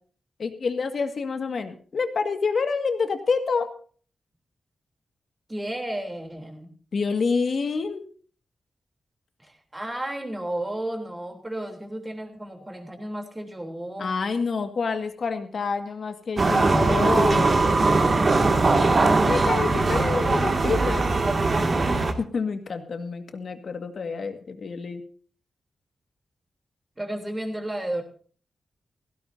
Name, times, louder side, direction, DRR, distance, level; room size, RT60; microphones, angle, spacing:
voice 1, 0.4-3.7 6.9-8.0 14.0-17.7 19.2-21.0 21.9-25.0, left 5 dB, 55° left, 7 dB, 1.9 m, -28 dB
voice 2, 5.5-6.7 9.4-14.1 17.4-20.3 27.0-28.0, right 1 dB, 15° right, 4 dB, 3.4 m, -34 dB
sound 1, 16.4-22.1, right 3 dB, 40° right, 2.2 m, -21 dB
17.5 x 16.5 x 2.7 m, 0.43 s
wide cardioid pair, 125°, 0 cm